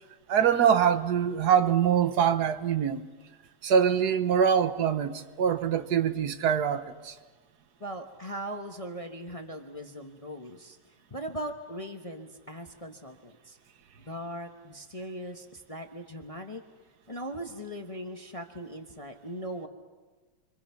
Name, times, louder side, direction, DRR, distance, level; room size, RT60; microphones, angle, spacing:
voice 1, 0.3-3.0 3.6-7.1, right 8 dB, 55° right, 1.4 m, -24 dB
voice 2, 7.8-10.8 11.1-13.6 14.0-16.6 17.1-19.7, equal, 25° left, 0.8 m, -39 dB
29.5 x 25.0 x 5.8 m
omnidirectional pair, 2.3 m